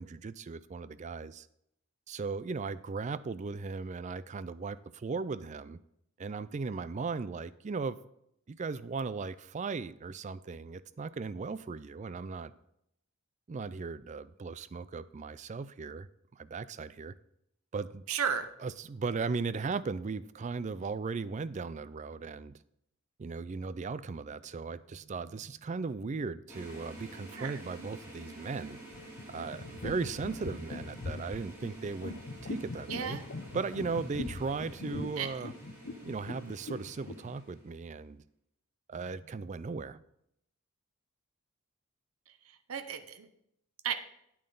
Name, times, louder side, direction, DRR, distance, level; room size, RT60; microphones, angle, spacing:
voice 1, 0.0-1.5 2.1-5.8 6.2-8.0 8.5-12.5 13.5-16.1 16.3-17.1 17.7-18.0 18.6-22.6 23.2-28.8 29.3-33.2 33.5-35.5 36.0-38.2 38.9-40.0, right 4 dB, 35° right, 16 dB, 0.3 m, -37 dB
voice 2, 18.1-18.5 27.4-27.6 32.9-33.2 35.2-35.3 42.7-43.3 43.8-43.9, right 7 dB, 75° right, 9 dB, 0.7 m, -33 dB
sound 1, 26.5-37.8, right 1 dB, 10° right, 3.0 m, -50 dB
sound 2, 28.9-37.4, left 3 dB, 55° left, 0.6 m, -41 dB
8.9 x 8.8 x 3.9 m, 0.76 s
head